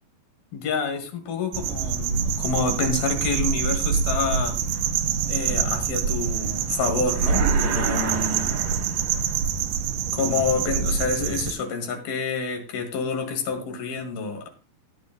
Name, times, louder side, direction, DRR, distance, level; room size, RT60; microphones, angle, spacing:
voice 1, 0.5-4.6 5.3-8.5 10.1-14.5, left 5 dB, 70° left, 5 dB, 3.5 m, -28 dB
sound 1, 1.5-11.5, right 7 dB, 80° right, 1.9 m, -25 dB
sound 2, 7.1-9.5, right 7 dB, 65° right, 1.9 m, -30 dB
17.5 x 9.6 x 2.2 m, 0.32 s
omnidirectional pair, 4.7 m